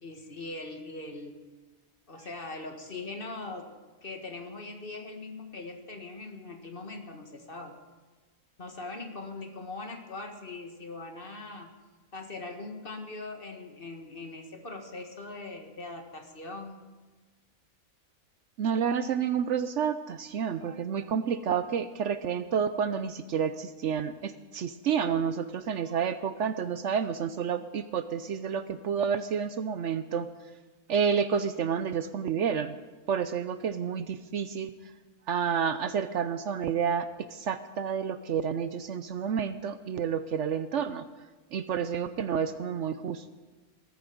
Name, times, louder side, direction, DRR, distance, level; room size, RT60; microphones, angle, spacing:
voice 1, 0.0-1.4 2.1-3.8 4.0-7.7 8.6-11.7 12.1-16.8, left 3 dB, 40° left, 4 dB, 1.8 m, -41 dB
voice 2, 18.6-30.3 30.9-32.8 33.1-34.7 35.3-41.1 41.5-43.3, right 7 dB, 65° right, 12 dB, 0.9 m, -30 dB
20.5 x 13.0 x 5.1 m, 1.3 s
omnidirectional pair, 1.4 m